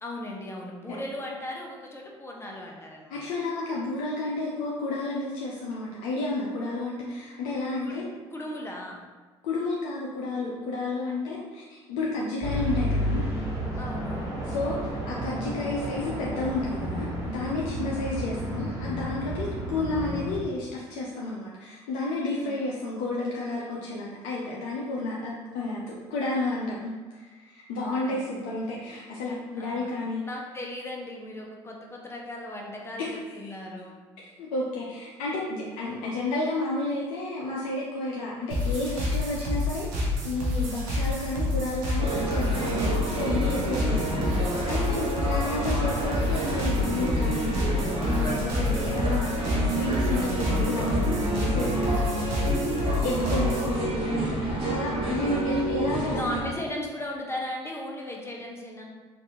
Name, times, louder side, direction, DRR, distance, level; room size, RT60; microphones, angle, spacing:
voice 1, 0.0-3.4 7.8-9.0 11.1-11.4 13.8-14.3 17.6-18.0 19.4-19.7 22.3-22.9 25.3-25.7 27.8-28.4 29.3-29.9 30.2-34.0 44.1-44.5 53.0-53.3 56.0-58.8, left 1 dB, 15° left, -1 dB, 0.7 m, -38 dB
voice 2, 3.1-8.0 9.4-13.3 14.4-30.2 33.0-33.1 33.4-33.5 34.2-52.5 53.0-56.8, left 2 dB, 70° left, -4 dB, 0.5 m, -31 dB
sound 1, 12.4-20.4, equal, 20° right, 1.3 m, -31 dB
sound 2, 38.5-53.7, left 2 dB, 75° right, 0.7 m, -28 dB
sound 3, 42.0-56.4, right 2 dB, 40° right, 0.9 m, -29 dB
3.3 x 2.5 x 2.8 m, 1.3 s
hypercardioid pair, 60°, 14 cm